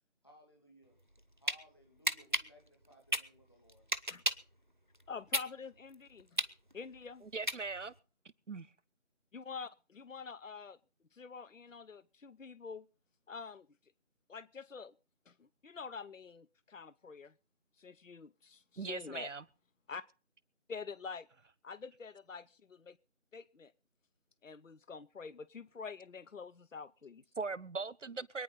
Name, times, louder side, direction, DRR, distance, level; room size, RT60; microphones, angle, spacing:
voice 1, 0.2-1.0 1.4-3.8, equal, 20° left, 2.6 m, -62 dB
sound 1, 1.0-1.6 2.0-4.5 4.9-8.0, equal, 40° right, 0.8 m, -34 dB
voice 2, 5.1-6.3 6.7-7.2 9.3-10.8 11.1-12.8 13.3-13.7 14.3-14.9 15.3-17.3 17.8-19.3 19.9-20.0 20.7-21.3 21.6-23.0 23.3-23.7 24.4-27.2, left 5 dB, 85° left, 0.8 m, -46 dB
voice 3, 7.2-7.9 8.5-8.7 18.8-19.4 27.4-28.4, right 4 dB, 70° right, 0.8 m, -40 dB
24.5 x 9.5 x 4.0 m
figure-of-eight pair, 180°, 38 cm